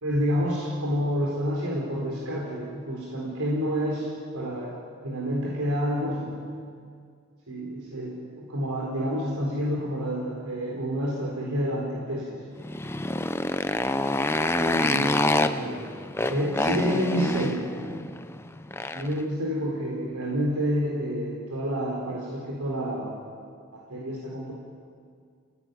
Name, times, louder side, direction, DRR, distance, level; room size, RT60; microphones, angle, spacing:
voice 1, 0.0-4.8 5.0-6.4 7.5-12.4 14.0-15.8 16.3-17.7 18.9-23.1 23.7-24.5, equal, 85° right, -3 dB, 4.3 m, -29 dB
Motorcycle, 12.6-19.2, left 2 dB, 10° left, 0.7 m, -27 dB
28.0 x 17.5 x 9.4 m, 2.2 s
head